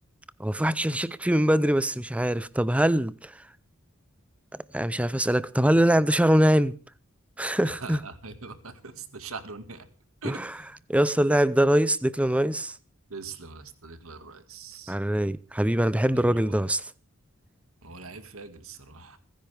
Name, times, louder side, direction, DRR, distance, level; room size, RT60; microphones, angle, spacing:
voice 1, 0.4-3.3 4.7-6.8 7.4-8.0 10.9-12.7 14.9-16.8, right 1 dB, 5° right, 0.6 m, -23 dB
voice 2, 7.6-9.9 10.2-10.7 13.1-15.0 16.1-16.6 17.8-19.2, right 4 dB, 90° right, 2.1 m, -42 dB
29.0 x 10.5 x 3.5 m
head